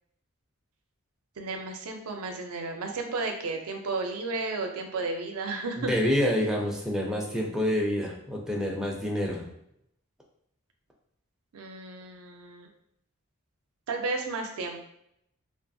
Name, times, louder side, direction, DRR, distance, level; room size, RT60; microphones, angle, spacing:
voice 1, 1.4-5.9 11.5-12.7 13.9-14.8, right 3 dB, 90° right, 3 dB, 0.5 m, -33 dB
voice 2, 5.8-9.5, left 1 dB, 5° right, -2 dB, 0.4 m, -27 dB
2.7 x 2.4 x 2.6 m, 0.75 s
head